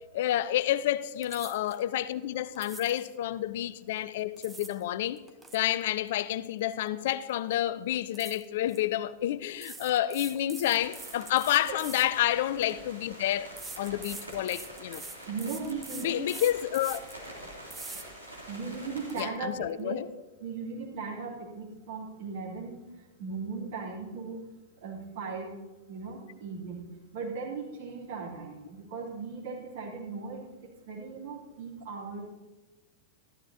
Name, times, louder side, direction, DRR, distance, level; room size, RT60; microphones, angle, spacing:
voice 1, 0.1-5.2 5.5-15.0 16.0-17.0 19.2-20.1, left 13 dB, 55° left, 0.4 m, -29 dB
sound 1, 1.2-1.8 2.6-3.1 4.1-4.8 5.2-7.0 7.3-7.5 8.1-8.8 9.6-12.7 13.6-17.2 17.7-18.1 18.5-18.6 19.0-19.2, right 3 dB, 10° right, 1.0 m, -44 dB
sound 2, 10.7-19.2, right 1 dB, 85° right, 2.8 m, -46 dB
voice 2, 15.2-16.3 18.5-20.0 20.4-22.8 23.2-24.4 24.8-25.6 25.9-26.8 27.1-32.2, right 5 dB, 55° right, 3.4 m, -38 dB
14.0 x 12.5 x 2.9 m
figure-of-eight pair, 90°, 0 cm